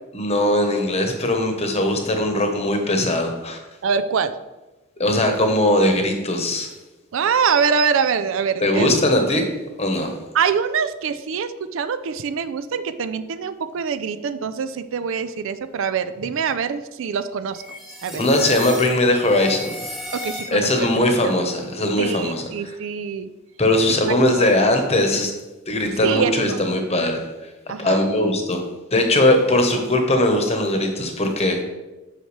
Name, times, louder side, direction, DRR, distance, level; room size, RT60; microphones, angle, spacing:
voice 1, 0.1-3.6 5.0-6.7 8.6-9.4 9.8-10.1 18.1-19.7 20.5-22.4 23.6-25.3 25.7-27.2 27.8-28.6 28.9-31.6, left 1 dB, 30° left, 4 dB, 1.0 m, -20 dB
voice 2, 3.8-4.4 7.1-8.9 10.3-17.6 18.0-18.2 20.1-20.9 21.2-21.3 22.0-23.3 24.3-24.5 26.0-26.7 27.7-28.1, right 6 dB, 70° right, 11 dB, 0.4 m, -24 dB
sound 1, 17.5-20.9, equal, ahead, 1.0 m, -34 dB
8.2 x 5.8 x 3.2 m, 1.1 s
head